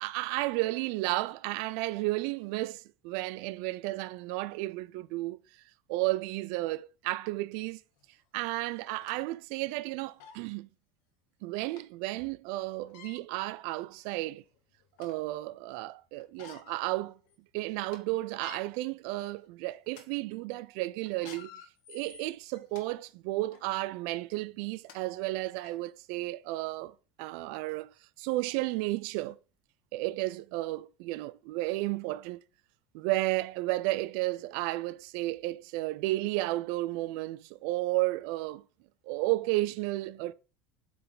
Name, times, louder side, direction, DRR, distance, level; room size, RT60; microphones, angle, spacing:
voice 1, 0.0-5.4 5.9-7.8 8.3-10.7 11.4-14.4 15.0-17.2 17.5-21.5 21.9-29.4 29.9-32.4 32.9-38.6 39.1-40.3, right 19 dB, 60° right, 0.4 m, -33 dB
sound 1, 8.0-8.1 8.8-9.2 9.8-9.9 10.2-10.4 11.8-11.9 12.8-13.2 14.0-14.1 14.5-15.2 16.2-16.8 17.2-17.3 17.7-18.0 18.3-18.6 19.3-19.5 19.9-20.0 21.1-22.8 23.5-23.6 24.5-24.6 24.9-25.0 25.6-25.7, left 8 dB, 65° left, 1.2 m, -51 dB
7.7 x 3.4 x 3.9 m
cardioid pair, 170°, 0 cm